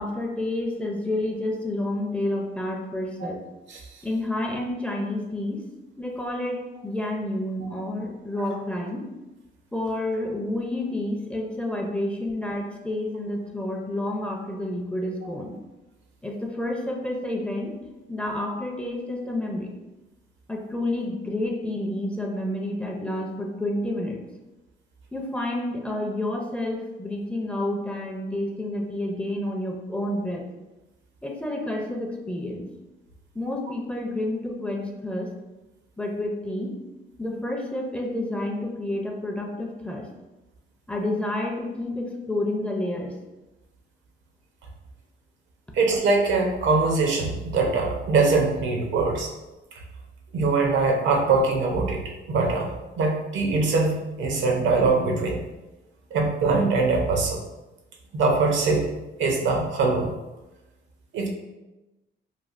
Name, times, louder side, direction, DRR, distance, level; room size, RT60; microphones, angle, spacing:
voice 1, 0.0-3.4 4.0-5.6 6.0-9.0 9.7-15.6 16.2-17.7 18.1-19.8 20.5-24.2 25.1-30.4 31.2-32.7 33.3-35.3 36.0-36.7 37.2-40.1 40.9-43.2, left 1 dB, 5° left, 1 dB, 0.4 m, -29 dB
voice 2, 45.7-49.3 50.3-52.0 52.3-52.7 53.0-55.4 56.1-57.4 58.1-58.9 59.2-60.1 61.1-61.3, right 3 dB, 70° right, 1 dB, 0.6 m, -22 dB
3.2 x 2.3 x 2.4 m, 1.0 s
cardioid pair, 90°, 20 cm